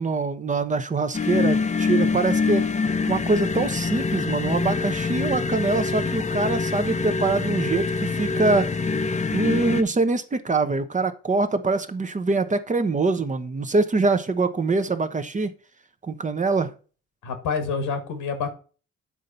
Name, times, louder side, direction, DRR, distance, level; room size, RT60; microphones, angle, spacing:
voice 1, 0.0-2.6 3.1-8.7 9.3-15.5 16.0-16.7, right 3 dB, 25° right, 0.8 m, -24 dB
sound 1, 1.1-9.8, left 4 dB, 25° left, 0.7 m, -25 dB
voice 2, 17.2-18.5, left 5 dB, 80° left, 1.7 m, -27 dB
8.3 x 3.9 x 5.4 m
cardioid pair, 90°, 30 cm